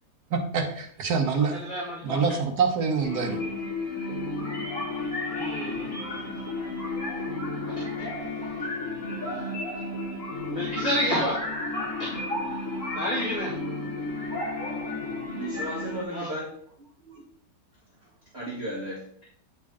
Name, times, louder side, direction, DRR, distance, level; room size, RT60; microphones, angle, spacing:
voice 1, 0.3-1.6 2.0-3.4, right 5 dB, 65° right, 3 dB, 1.7 m, -25 dB
voice 2, 1.3-2.2 5.3-7.2 7.6-8.1 9.3-9.4 10.5-11.4 12.0-12.1 12.9-13.5 16.1-16.3, equal, 20° left, -7 dB, 1.8 m, -31 dB
sound 1, 3.0-16.0, left 2 dB, 45° left, 3.3 m, -32 dB
voice 3, 15.3-16.5 16.8-17.2 18.3-19.0, right 1 dB, 35° right, -6 dB, 1.9 m, -35 dB
8.7 x 5.4 x 3.7 m, 0.63 s
omnidirectional pair, 1.9 m